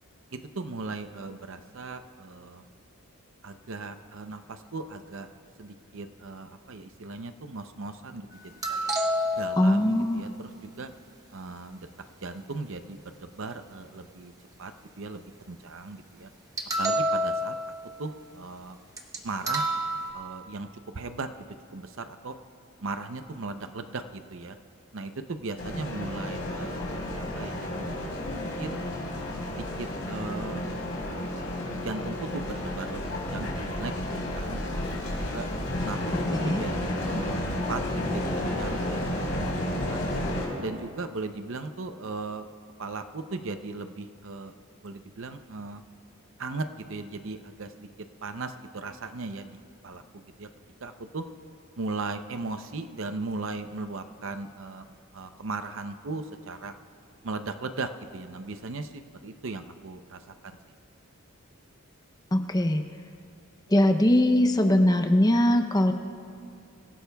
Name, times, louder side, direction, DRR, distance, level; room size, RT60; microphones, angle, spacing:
voice 1, 0.3-2.6 3.4-5.3 5.6-8.4 8.7-8.9 9.3-10.9 11.3-11.8 12.2-14.3 14.6-14.7 15.0-16.3 16.8-17.5 18.0-18.8 19.2-19.7 20.1-20.7 20.9-21.3 21.7-22.4 22.8-24.6 24.9-28.8 29.5-30.7 31.8-34.0 34.3-34.9 35.2-35.5 35.8-37.4 37.7-39.0 39.3-40.1 40.6-42.4 42.8-44.5 44.8-45.8 46.4-47.9 48.2-49.6 49.8-50.5 50.8-51.2 51.8-54.9 55.1-56.7 57.2-60.6, right 3 dB, 65° right, 9 dB, 0.6 m, -37 dB
sound 1, 8.6-10.0 16.6-17.9 19.0-19.2 19.5-20.1, equal, 15° right, 0.9 m, -28 dB
voice 2, 9.6-10.2 36.4-36.6 62.3-62.8 63.7-65.9, left 1 dB, 15° left, 6 dB, 0.6 m, -21 dB
sound 2, 25.6-40.5, left 1 dB, 55° left, 4.0 m, -31 dB
25.0 x 16.0 x 2.3 m, 2.5 s
head